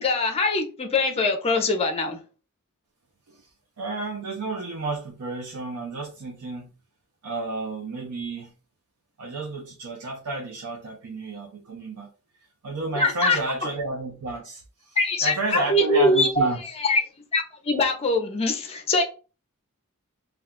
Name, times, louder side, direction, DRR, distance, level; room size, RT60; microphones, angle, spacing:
voice 1, 0.0-2.2 13.0-13.4 15.0-16.5 16.8-17.0 17.3-19.0, left 2 dB, 25° left, 5 dB, 0.5 m, -22 dB
voice 2, 3.8-6.7 7.2-8.5 9.2-12.1 12.6-16.6, right 3 dB, 85° right, -1 dB, 0.5 m, -31 dB
2.3 x 2.3 x 3.5 m, 0.34 s
head